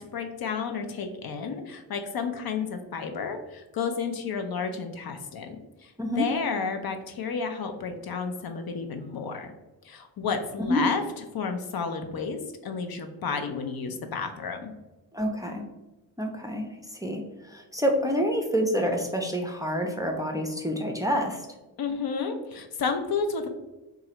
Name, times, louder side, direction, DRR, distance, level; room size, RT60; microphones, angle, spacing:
voice 1, 0.0-9.5 9.8-11.0 11.3-14.7 21.8-23.5, left 5 dB, 55° left, 6 dB, 0.5 m, -31 dB
voice 2, 15.1-15.6 16.2-21.5, equal, 10° right, 1 dB, 0.5 m, -28 dB
3.0 x 2.4 x 2.9 m, 1.0 s
supercardioid pair, 45°, 45 cm